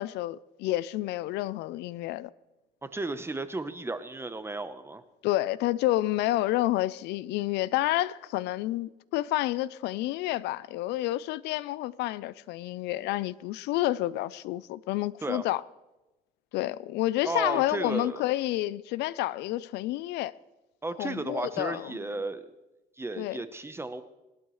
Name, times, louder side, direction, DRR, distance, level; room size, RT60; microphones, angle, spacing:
voice 1, 0.0-2.3 5.2-15.6 16.5-20.3 21.0-21.9 23.2-23.4, left 16 dB, 85° left, 0.5 m, -29 dB
voice 2, 2.8-5.0 15.2-15.4 17.2-18.2 20.8-22.5 23.0-24.0, right 2 dB, 15° right, 0.9 m, -34 dB
21.0 x 12.0 x 3.2 m
cardioid pair, 110°, 17 cm